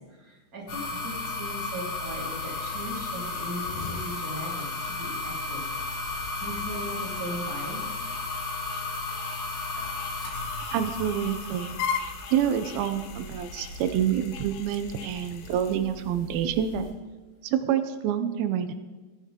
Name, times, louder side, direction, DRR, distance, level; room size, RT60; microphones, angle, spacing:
voice 1, 0.2-5.6 6.4-7.9, equal, 25° right, -5 dB, 3.8 m, -38 dB
sound 1, 0.7-16.9, left 3 dB, 60° left, 3.9 m, -35 dB
sound 2, 2.2-15.8, left 7 dB, 75° left, 1.8 m, -41 dB
voice 2, 10.7-11.8 12.3-16.9 17.4-18.7, right 9 dB, 90° right, 9 dB, 2.6 m, -27 dB
19.5 x 7.9 x 3.7 m, 1.4 s
omnidirectional pair, 4.2 m